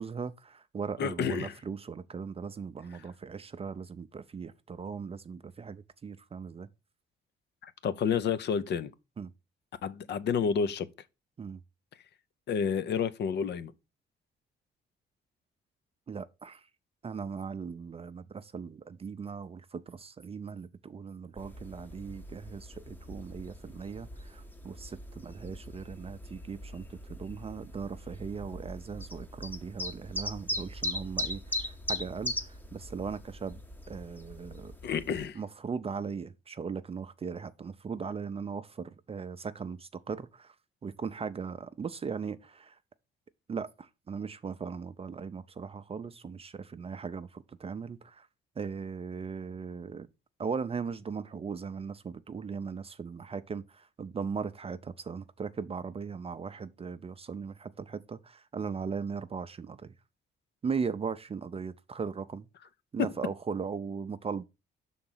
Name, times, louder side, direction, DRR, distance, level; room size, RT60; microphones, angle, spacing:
voice 1, 0.0-6.7 9.2-9.3 11.4-11.6 16.1-16.6 17.0-26.8 27.1-33.6 33.9-34.7 35.3-40.5 40.8-42.8 43.5-48.3 48.6-50.1 50.4-59.9 60.6-62.5 62.9-64.4, right 5 dB, 30° right, 0.5 m, -38 dB
voice 2, 1.0-1.6 7.6-8.9 9.8-10.9 12.5-13.7 34.8-35.4 63.0-63.1, left 7 dB, 60° left, 0.6 m, -30 dB
sound 1, 21.4-35.3, left 1 dB, 10° left, 0.8 m, -40 dB
6.0 x 3.9 x 5.5 m
cardioid pair, 90°, 20 cm